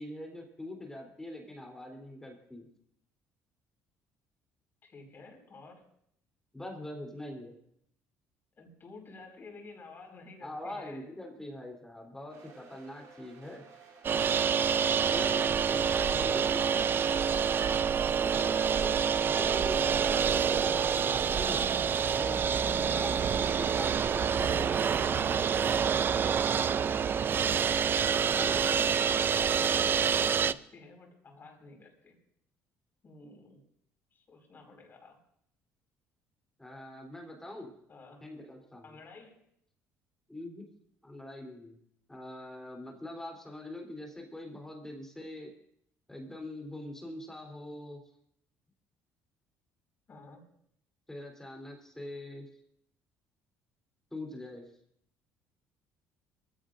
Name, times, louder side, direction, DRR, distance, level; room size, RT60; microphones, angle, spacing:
voice 1, 0.0-2.7 6.5-7.6 10.4-13.6 15.1-16.9 18.2-21.8 22.1-25.5 28.3-28.8 36.6-37.7 38.2-39.0 40.3-40.6 41.0-41.8 42.1-45.5 46.1-48.0 51.1-52.5 54.1-54.7, left 1 dB, 10° left, 0 dB, 3.6 m, -43 dB
voice 2, 4.8-5.9 8.6-11.1 15.7-17.6 18.1-19.1 19.9-20.1 22.5-22.8 26.8-27.3 28.3-28.9 29.3-32.2 33.0-33.6 34.1-35.2 37.9-38.2 38.8-39.4 50.1-50.5, left 3 dB, 40° left, 1 dB, 5.2 m, -51 dB
sound 1, 12.3-25.2, right 5 dB, 65° right, 4.6 m, -56 dB
sound 2, 14.0-30.5, right 7 dB, 40° right, 0.4 m, -27 dB
22.5 x 16.0 x 2.6 m, 0.71 s
cardioid pair, 95°, 6 cm